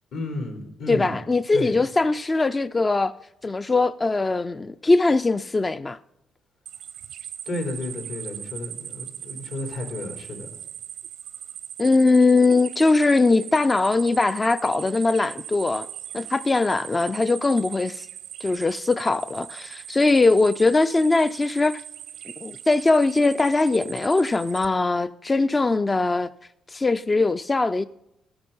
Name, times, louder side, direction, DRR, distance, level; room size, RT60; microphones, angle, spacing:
voice 1, 0.1-1.2 1.5-1.8 7.5-10.5, left 2 dB, 75° left, 3.6 m, -32 dB
voice 2, 0.9-3.1 3.4-6.0 11.8-15.9 16.1-18.1 18.4-21.8 22.4-26.3 26.7-27.9, left 3 dB, 25° left, 0.4 m, -21 dB
sound 1, 6.7-24.7, right 10 dB, 80° right, 0.7 m, -39 dB
13.5 x 8.8 x 5.4 m
cardioid pair, 90°, 0 cm